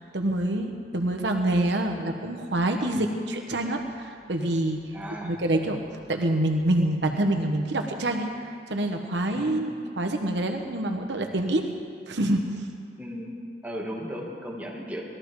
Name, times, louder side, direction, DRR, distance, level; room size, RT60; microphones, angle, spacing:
voice 1, 0.1-4.8 5.2-5.8 6.1-11.6 12.1-12.5, right 1 dB, 75° right, 4 dB, 1.1 m, -26 dB
voice 2, 4.9-5.4 9.3-9.6 13.0-13.3 13.6-15.0, equal, 10° right, -3 dB, 2.1 m, -36 dB
20.0 x 13.5 x 4.8 m, 2.4 s
head